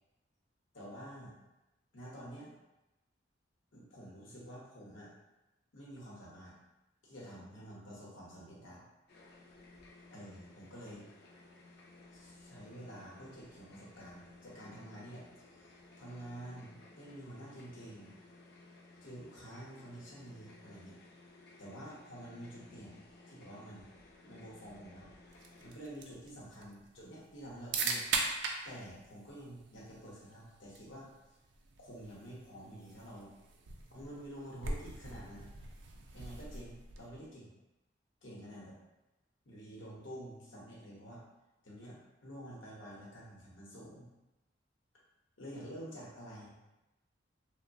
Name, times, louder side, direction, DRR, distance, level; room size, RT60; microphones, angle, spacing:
voice 1, 0.7-1.4 1.9-2.5 3.7-5.1 5.7-6.6 7.0-8.8 10.1-11.1 12.1-15.2 15.5-18.1 19.0-21.0 21.6-23.9 24.2-25.1 25.6-28.4 28.6-31.1 31.8-33.3 33.9-35.5 36.1-37.5 38.2-38.7 39.5-41.2 41.6-44.1 45.4-46.6, right 1 dB, 75° left, -4 dB, 0.8 m, -49 dB
sound 1, 9.1-25.8, left 2 dB, 55° left, 0.4 m, -58 dB
sound 2, 25.3-37.3, right 4 dB, 65° right, 0.3 m, -42 dB
2.9 x 2.0 x 2.5 m, 0.99 s
head